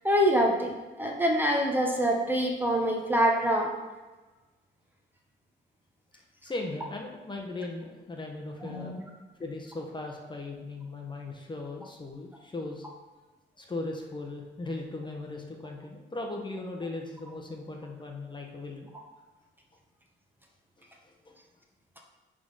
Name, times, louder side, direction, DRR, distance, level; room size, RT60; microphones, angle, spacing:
voice 1, 0.0-3.7 8.6-9.1, equal, 10° right, 0 dB, 1.1 m, -25 dB
voice 2, 6.4-9.0 9.4-12.9 13.6-18.9 21.0-21.3, left 2 dB, 25° left, 1 dB, 1.1 m, -38 dB
9.7 x 3.8 x 4.1 m, 1.2 s
cardioid pair, 90°, 20 cm